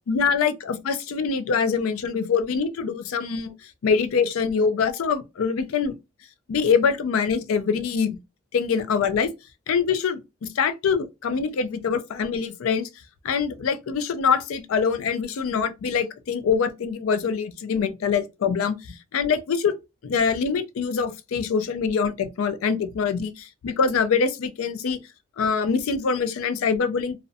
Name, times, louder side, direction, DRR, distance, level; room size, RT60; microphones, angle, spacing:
voice 1, 0.1-3.5 3.8-5.9 6.5-8.2 8.5-9.3 9.7-12.9 13.2-19.8 20.0-25.0 25.4-27.2, left 6 dB, 80° left, 0.4 m, -24 dB
2.6 x 2.1 x 2.5 m
head